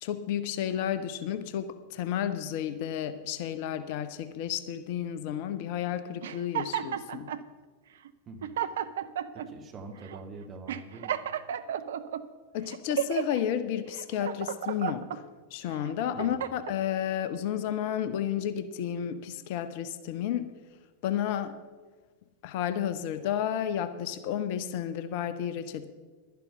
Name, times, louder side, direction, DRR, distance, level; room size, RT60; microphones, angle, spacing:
voice 1, 0.0-7.3 12.5-15.2 15.5-20.5 21.0-21.6 22.4-25.8, left 10 dB, 50° left, 12 dB, 0.7 m, -32 dB
sound 1, 6.2-7.4 8.1-8.2 8.4-9.5 10.0-10.2 10.7-12.2 12.7-13.4 13.9-15.2 15.8-16.8, right 10 dB, 60° right, 0.5 m, -33 dB
voice 2, 8.2-8.6 9.3-11.1 16.1-16.5, right 3 dB, 30° right, 4 dB, 1.8 m, -44 dB
11.5 x 10.5 x 5.9 m, 1.4 s
figure-of-eight pair, 90°, 0 cm